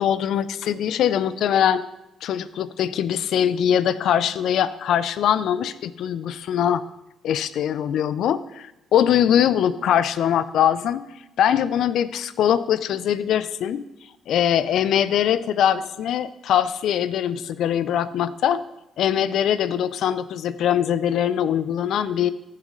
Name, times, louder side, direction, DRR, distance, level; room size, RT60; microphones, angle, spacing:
voice 1, 0.0-1.8 2.2-6.8 7.2-11.0 11.4-13.8 14.3-18.6 19.0-22.3, left 9 dB, 70° left, 16 dB, 0.5 m, -22 dB
15.5 x 6.5 x 3.8 m, 0.92 s
supercardioid pair, 55°, 0 cm